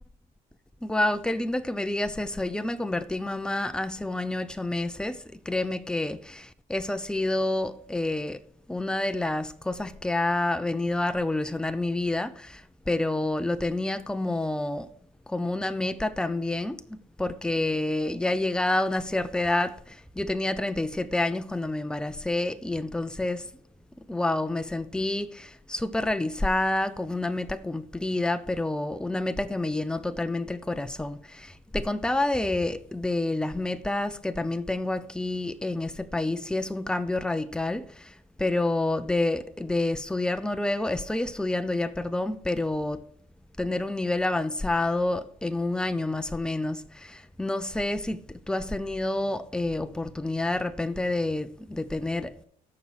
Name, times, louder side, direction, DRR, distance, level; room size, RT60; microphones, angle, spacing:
voice 1, 0.8-8.4 8.7-14.9 15.3-23.5 24.0-43.0 43.6-52.4, left 2 dB, 5° left, 0.6 m, -28 dB
14.5 x 5.5 x 6.5 m
cardioid pair, 110°, 17 cm